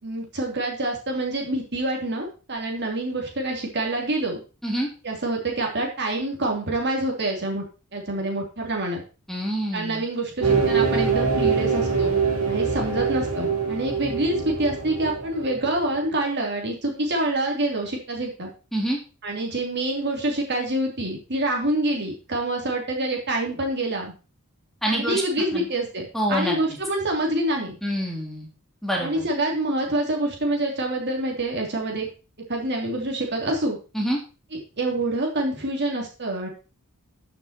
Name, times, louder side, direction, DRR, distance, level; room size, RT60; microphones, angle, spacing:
voice 1, 0.0-4.4 5.0-7.6 7.9-9.0 9.7-12.1 12.5-18.5 19.2-24.1 24.9-27.8 29.0-32.1 32.5-33.8 34.5-36.5, right 1 dB, 50° right, 1 dB, 3.2 m, -26 dB
voice 2, 9.3-10.0 18.7-19.0 24.8-25.2 25.5-25.7 26.1-26.6 27.8-28.5 28.8-29.2 33.9-34.2, equal, ahead, -1 dB, 2.9 m, -26 dB
sound 1, 10.4-15.9, right 5 dB, 85° right, 4.0 m, -24 dB
13.5 x 6.7 x 4.4 m, 0.34 s
head